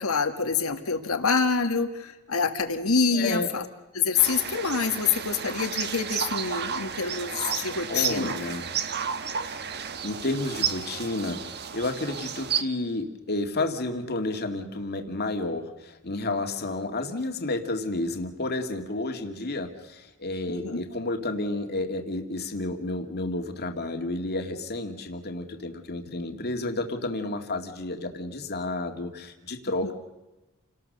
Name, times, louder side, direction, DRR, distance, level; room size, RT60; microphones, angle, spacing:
voice 1, 0.0-3.6 3.9-8.3 20.5-20.8 26.1-26.2 29.8-29.9, left 5 dB, 80° left, 7 dB, 1.8 m, -26 dB
voice 2, 3.1-3.5 7.9-8.7 9.4-9.6 10.0-29.9, left 2 dB, 50° left, 5 dB, 2.2 m, -31 dB
sound 1, 4.2-12.6, right 7 dB, 50° right, 1.3 m, -32 dB
28.5 x 19.0 x 6.7 m, 1.1 s
head